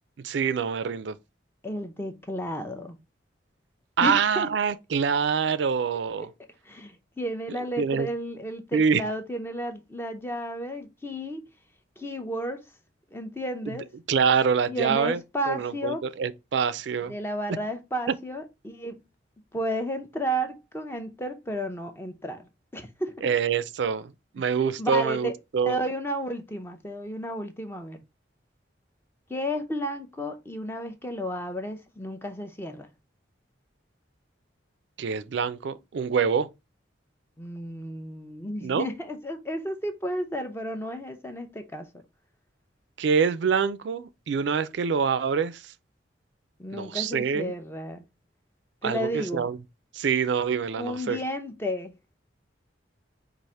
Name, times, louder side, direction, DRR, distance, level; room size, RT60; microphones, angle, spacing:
voice 1, 0.2-1.2 4.0-6.3 7.8-8.1 8.7-9.0 14.1-15.2 15.5-17.1 23.2-25.8 35.0-36.5 38.6-38.9 43.0-45.7 46.7-47.5 48.8-49.6 49.9-51.2, right 6 dB, 70° right, 0.4 m, -25 dB
voice 2, 1.6-3.0 4.0-4.5 6.7-11.4 12.0-12.6 13.1-13.9 14.7-16.0 17.1-19.0 19.5-23.3 24.8-25.4 25.7-28.0 29.3-32.9 37.4-41.9 46.6-48.0 48.8-49.5 50.8-51.9, equal, 10° left, 0.6 m, -32 dB
4.8 x 2.5 x 4.1 m
head